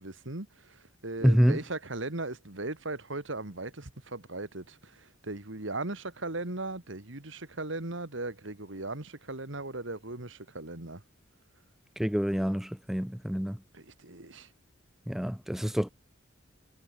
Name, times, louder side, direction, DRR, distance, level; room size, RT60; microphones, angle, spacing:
voice 1, 0.0-11.0 13.7-14.5, right 2 dB, 70° right, 2.5 m, -38 dB
voice 2, 1.2-1.6 12.0-13.6 15.1-15.9, equal, ahead, 0.4 m, -26 dB
head